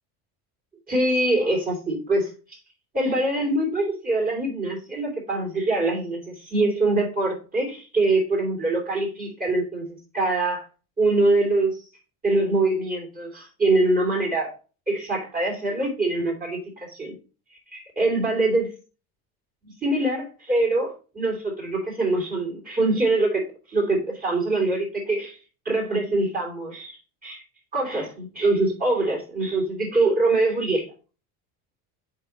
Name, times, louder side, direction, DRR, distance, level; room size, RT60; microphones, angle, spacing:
voice 1, 0.9-2.3 2.9-10.7 11.0-11.8 12.2-14.5 14.9-17.1 17.5-18.7 19.6-25.4 25.6-27.4 27.7-30.9, right 2 dB, 20° right, -1 dB, 3.0 m, -24 dB
5.3 x 4.9 x 5.1 m, 0.35 s
cardioid pair, 140°, 43 cm